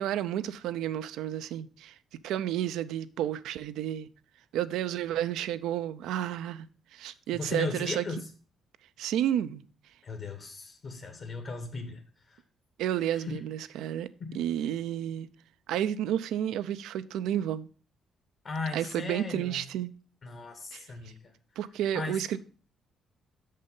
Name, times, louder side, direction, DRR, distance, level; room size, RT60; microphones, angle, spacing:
voice 1, 0.0-1.9 2.2-4.1 4.5-6.7 6.9-8.0 9.0-9.6 12.8-14.1 14.3-15.3 15.7-17.7 18.7-19.9 20.7-20.8 21.6-22.4, right 11 dB, 90° right, 0.4 m, -31 dB
voice 2, 7.3-8.2 10.0-12.0 12.3-12.4 13.3-13.4 14.2-14.4 18.4-19.6 20.2-21.2 21.9-22.4, left 3 dB, 55° left, 1.2 m, -37 dB
6.4 x 5.5 x 5.4 m
cardioid pair, 90°, 0 cm